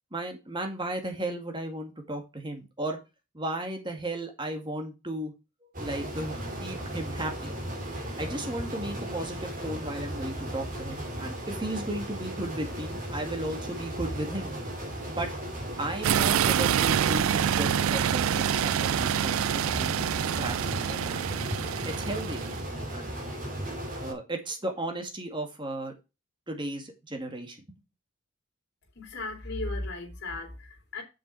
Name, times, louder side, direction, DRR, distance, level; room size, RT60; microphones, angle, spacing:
voice 1, 0.1-3.0 3.3-5.3 5.8-7.5 8.2-14.5 15.2-15.3 15.8-20.0 20.4-21.2 21.8-22.5 22.9-23.1 24.0-26.0 26.5-27.6, right 1 dB, 25° right, 2.1 m, -35 dB
sound 1, 5.7-24.1, right 1 dB, 40° right, 3.0 m, -36 dB
sound 2, 16.0-22.6, right 9 dB, 80° right, 0.4 m, -26 dB
voice 2, 28.9-31.0, left 2 dB, 55° left, 2.8 m, -36 dB
7.2 x 6.1 x 4.8 m
head